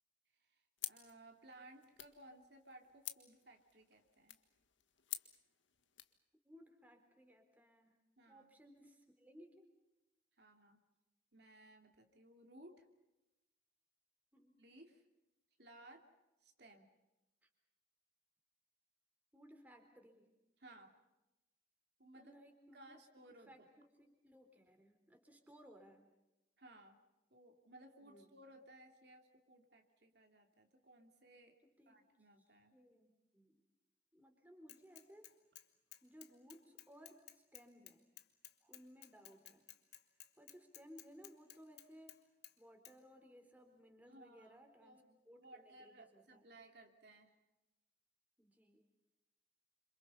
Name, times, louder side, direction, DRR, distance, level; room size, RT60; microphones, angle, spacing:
voice 1, 0.3-4.4 8.2-8.5 10.4-10.8 11.3-12.9 14.6-15.0 15.6-16.1 16.4-16.9 20.6-21.0 22.0-22.3 22.7-23.5 26.6-27.0 27.3-31.6 31.9-32.7 44.1-47.4, right 1 dB, 55° right, 3 dB, 2.8 m, -60 dB
sound 1, 0.8-6.2, left 14 dB, 80° left, 1.8 m, -51 dB
voice 2, 6.4-8.0 8.3-9.6 14.3-14.5 17.4-17.5 19.3-20.3 22.1-23.0 23.5-26.1 28.0-28.3 31.6-32.0 32.4-33.6 34.1-35.3 36.0-38.0 38.6-39.7 40.4-42.2 42.6-45.0 45.3-46.5 48.4-48.8, equal, 10° right, 4 dB, 4.0 m, -61 dB
Bicycle / Mechanisms, 34.7-35.6 35.9-42.2 42.4-42.5 42.8-42.9, left 14 dB, 55° left, 2.0 m, -56 dB
29.0 x 27.0 x 5.6 m, 0.98 s
head